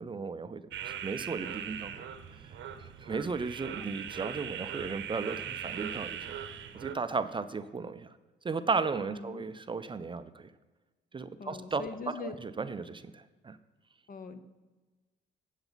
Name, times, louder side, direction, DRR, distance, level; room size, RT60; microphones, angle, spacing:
voice 1, 0.0-1.9 2.8-6.5 6.7-8.2 8.4-10.5 11.1-11.8 12.2-13.6, right 4 dB, 25° right, 11 dB, 0.4 m, -35 dB
sound 1, 0.7-6.9, right 9 dB, 70° right, 0.8 m, -40 dB
voice 2, 9.1-9.4 11.4-12.4 14.1-14.4, left 4 dB, 45° left, 11 dB, 0.7 m, -42 dB
8.8 x 7.9 x 4.0 m, 1.2 s
cardioid pair, 90°, 20 cm